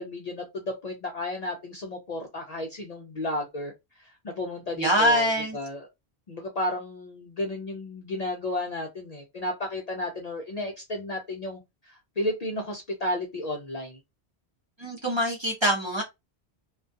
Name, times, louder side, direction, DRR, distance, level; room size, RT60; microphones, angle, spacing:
voice 1, 0.0-5.9 6.3-14.0, left 1 dB, 50° left, 0.5 m, -33 dB
voice 2, 4.8-5.6 14.8-16.0, equal, 35° right, 0.6 m, -24 dB
2.3 x 2.2 x 2.5 m
omnidirectional pair, 1.1 m